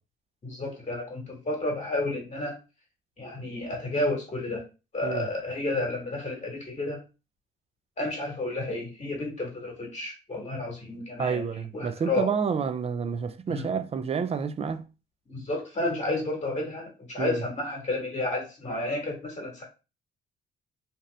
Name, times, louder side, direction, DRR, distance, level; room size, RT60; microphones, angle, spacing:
voice 1, 0.4-2.5 3.2-4.6 4.9-7.0 8.0-11.4 11.7-12.3 13.5-13.7 15.3-19.6, left 2 dB, 35° left, 1.3 m, -31 dB
voice 2, 11.2-14.8 17.2-17.4, right 6 dB, 30° right, 0.4 m, -29 dB
2.8 x 2.5 x 3.2 m
cardioid pair, 90°, 20 cm